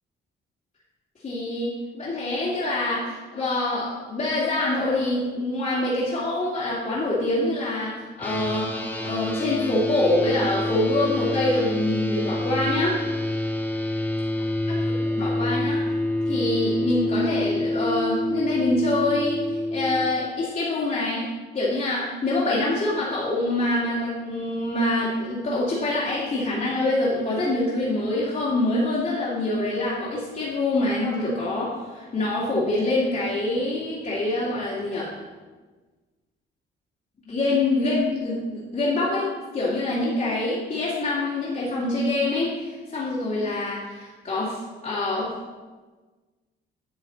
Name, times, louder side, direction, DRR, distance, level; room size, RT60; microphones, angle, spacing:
voice 1, 1.2-8.7 9.0-13.0 14.7-15.9 16.3-21.3 21.5-35.2 37.3-39.3 39.5-45.4, left 2 dB, 40° left, -9 dB, 2.3 m, -25 dB
sound 1, 8.2-20.1, left 1 dB, 10° left, 1.4 m, -27 dB
9.7 x 6.2 x 3.9 m, 1.3 s
cardioid pair, 90°, 20 cm